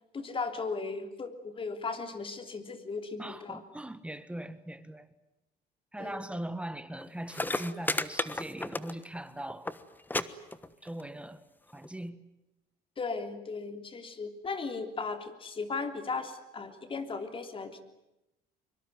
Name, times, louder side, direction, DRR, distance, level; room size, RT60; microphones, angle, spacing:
voice 1, 0.1-3.6 6.0-6.2 13.0-17.8, left 4 dB, 30° left, 3.3 m, -36 dB
voice 2, 3.2-5.1 5.9-9.7 10.8-11.4 11.7-12.2, right 1 dB, 5° right, 1.5 m, -40 dB
sound 1, 7.0-7.1 7.3-9.2 9.5-9.8 10.1-10.2 10.5-11.0 11.8-11.9, left 2 dB, 10° left, 1.3 m, -32 dB
24.0 x 24.0 x 9.4 m
cardioid pair, 110°, 17 cm